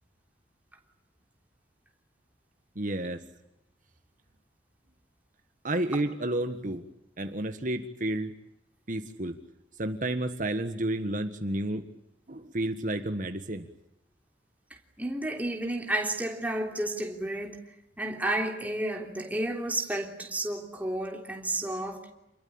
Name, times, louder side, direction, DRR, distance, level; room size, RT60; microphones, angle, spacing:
voice 1, 2.7-3.2 5.6-6.8 7.2-8.3 8.9-9.4 9.8-11.8 12.3-13.7, right 1 dB, 45° right, 1.6 m, -31 dB
voice 2, 15.0-22.1, right 1 dB, 10° right, 3.3 m, -32 dB
28.5 x 22.0 x 8.8 m
head